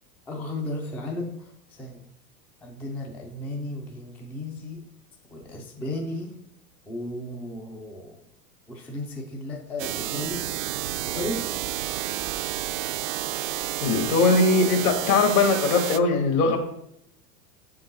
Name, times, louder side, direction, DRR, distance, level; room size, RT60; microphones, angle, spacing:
voice 1, 0.3-2.1 2.6-4.9 5.3-6.4 6.9-8.2 8.7-10.5 11.0-11.4, left 1 dB, 5° left, 0 dB, 0.3 m, -34 dB
sound 1, 9.8-16.0, right 13 dB, 60° right, 0.5 m, -30 dB
voice 2, 13.8-16.6, left 3 dB, 70° left, 2 dB, 1.6 m, -20 dB
6.8 x 3.8 x 4.0 m, 0.76 s
hypercardioid pair, 100°, 46 cm